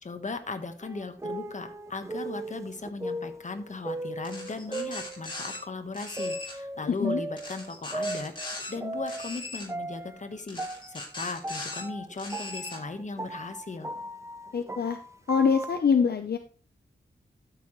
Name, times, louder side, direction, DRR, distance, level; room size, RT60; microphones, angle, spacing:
voice 1, 0.0-13.9, left 3 dB, 40° left, 7 dB, 1.3 m, -37 dB
sound 1, 0.8-5.6 6.2-9.4 9.7-15.8, right 2 dB, 15° right, 0.7 m, -37 dB
sound 2, 4.2-5.6 5.9-6.6 7.4-8.7 9.1-9.7 10.5-11.8 12.2-12.8, left 2 dB, 25° left, 3.0 m, -39 dB
voice 2, 6.9-7.2 14.5-15.0 15.3-16.4, left 6 dB, 60° left, 7 dB, 0.8 m, -24 dB
12.5 x 6.9 x 3.2 m, 0.38 s
wide cardioid pair, 95°, 19 cm